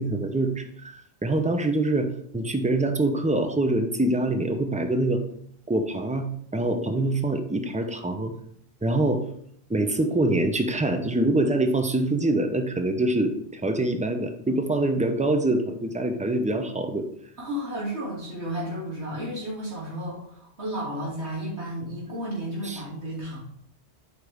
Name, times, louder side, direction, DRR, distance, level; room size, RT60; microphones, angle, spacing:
voice 1, 0.0-5.2 5.7-8.3 8.8-9.2 9.7-17.1 22.6-22.8, right 2 dB, 10° right, 6 dB, 0.5 m, -25 dB
voice 2, 17.4-23.4, equal, 85° right, -7 dB, 3.0 m, -33 dB
8.2 x 5.1 x 3.5 m, 0.67 s
omnidirectional pair, 1.1 m